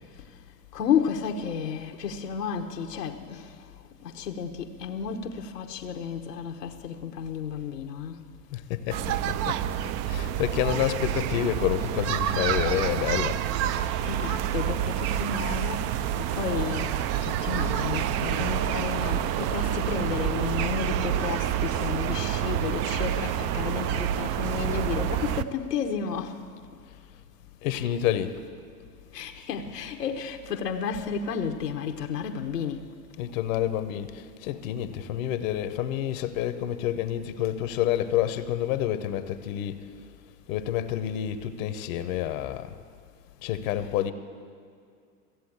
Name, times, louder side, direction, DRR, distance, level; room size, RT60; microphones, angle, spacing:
voice 1, 0.7-3.5 4.0-8.2 14.1-17.0 17.2-26.4 29.1-32.9, left 7 dB, 90° left, 1.1 m, -32 dB
voice 2, 8.5-9.6 10.1-13.4 27.6-28.4 33.2-39.9 40.5-42.7 43.4-44.1, left 11 dB, 60° left, 0.9 m, -28 dB
sound 1, 8.9-25.4, right 10 dB, 35° right, 0.4 m, -28 dB
15.5 x 7.6 x 8.6 m
hypercardioid pair, 95°, 47 cm